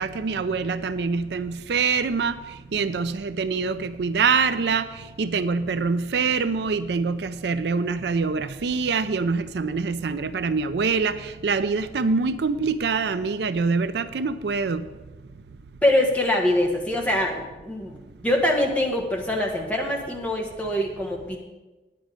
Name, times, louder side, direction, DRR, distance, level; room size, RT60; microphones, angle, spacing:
voice 1, 0.0-2.4 2.7-4.9 5.2-14.8, right 5 dB, 70° right, 13 dB, 0.4 m, -25 dB
voice 2, 15.8-21.4, left 1 dB, 10° left, 0 dB, 1.3 m, -24 dB
9.9 x 9.1 x 5.1 m, 1.2 s
head